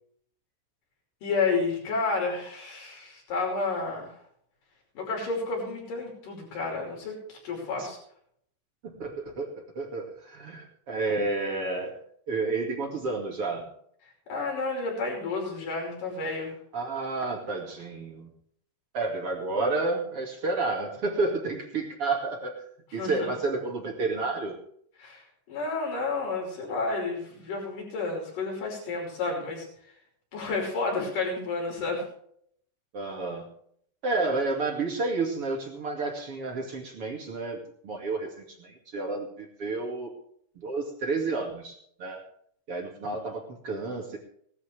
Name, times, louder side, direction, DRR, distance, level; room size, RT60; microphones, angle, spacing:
voice 1, 1.2-4.1 4.9-8.0 14.3-16.6 22.9-23.3 25.0-25.2 25.5-29.7 30.3-32.1, left 3 dB, 45° left, 0 dB, 6.7 m, -31 dB
voice 2, 8.8-12.0 12.3-13.6 16.7-18.3 18.9-22.6 22.9-24.6 32.9-33.5 34.0-40.1 40.6-42.2 42.7-44.2, right 3 dB, 40° right, 1 dB, 2.4 m, -30 dB
19.0 x 12.5 x 3.4 m, 0.65 s
omnidirectional pair, 5.5 m